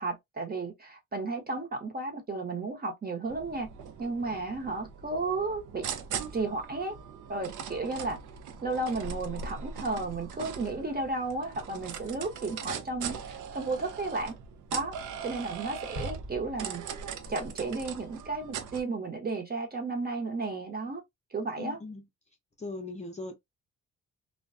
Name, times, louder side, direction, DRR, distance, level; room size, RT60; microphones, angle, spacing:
voice 1, 0.0-3.7 4.0-5.9 6.3-7.0 7.3-8.2 8.6-14.4 14.7-14.9 15.2-16.8 17.3-21.0 21.3-21.8, right 3 dB, 30° right, 0.8 m, -33 dB
sound 1, 3.3-18.8, right 6 dB, 85° right, 0.5 m, -40 dB
sound 2, 16.0-17.8 18.1-18.2, equal, 60° right, 1.2 m, -43 dB
voice 2, 21.6-22.1 22.6-23.4, left 2 dB, 25° left, 0.6 m, -39 dB
2.2 x 2.2 x 2.5 m
cardioid pair, 100°, 30 cm